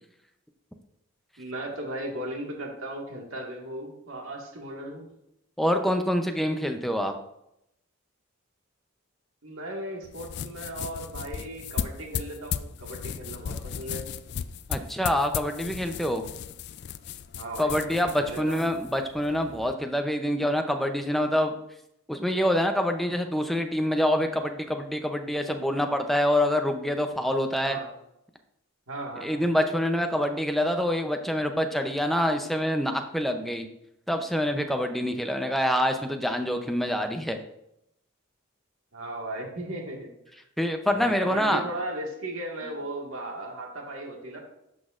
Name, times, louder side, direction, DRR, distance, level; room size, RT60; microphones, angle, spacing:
voice 1, 1.4-5.1 9.4-14.0 17.3-18.8 27.6-27.9 28.9-29.4 38.9-40.1 40.9-44.4, right 1 dB, 80° right, 0 dB, 1.8 m, -37 dB
voice 2, 5.6-7.1 14.7-16.2 17.6-21.5 22.1-27.8 29.2-33.7 34.1-37.4 40.6-41.6, equal, ahead, 5 dB, 0.5 m, -26 dB
sound 1, 10.0-19.7, left 8 dB, 55° left, 0.3 m, -36 dB
11.0 x 6.2 x 2.5 m, 0.81 s
head